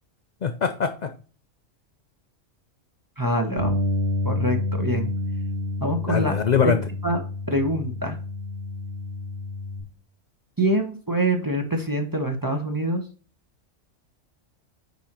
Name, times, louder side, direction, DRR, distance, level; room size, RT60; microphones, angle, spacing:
voice 1, 0.4-1.1 6.1-6.8, left 6 dB, 60° left, 7 dB, 0.4 m, -23 dB
voice 2, 3.2-3.8 4.2-5.1 5.8-6.7 7.0-7.2 7.5-8.2 10.6-13.0, right 1 dB, 20° right, 4 dB, 0.8 m, -25 dB
Bass guitar, 3.6-9.8, left 2 dB, 55° right, 3.3 m, -29 dB
9.3 x 3.7 x 2.9 m, 0.40 s
omnidirectional pair, 1.3 m